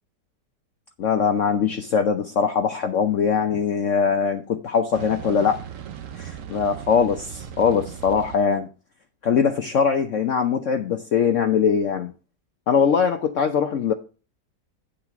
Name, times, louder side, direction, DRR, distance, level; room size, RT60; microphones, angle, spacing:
voice 1, 1.0-5.6 6.2-8.7 9.2-12.1 12.7-13.9, left 6 dB, 60° left, 0.9 m, -21 dB
sound 1, 4.9-8.4, right 9 dB, 60° right, 1.0 m, -38 dB
10.0 x 4.0 x 5.8 m
omnidirectional pair, 1.9 m